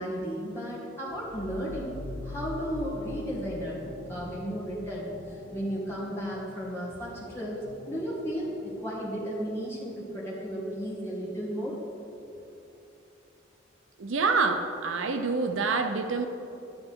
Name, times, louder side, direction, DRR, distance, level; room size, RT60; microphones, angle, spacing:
voice 1, 0.0-2.0 2.2-3.8 4.1-11.8 12.2-12.3, equal, 15° left, -7 dB, 2.2 m, -34 dB
sound 1, 1.0-10.4, left 2 dB, 85° left, 0.9 m, -44 dB
voice 2, 14.0-16.3, right 4 dB, 75° right, 6 dB, 0.6 m, -27 dB
10.0 x 10.0 x 3.8 m, 2.9 s
head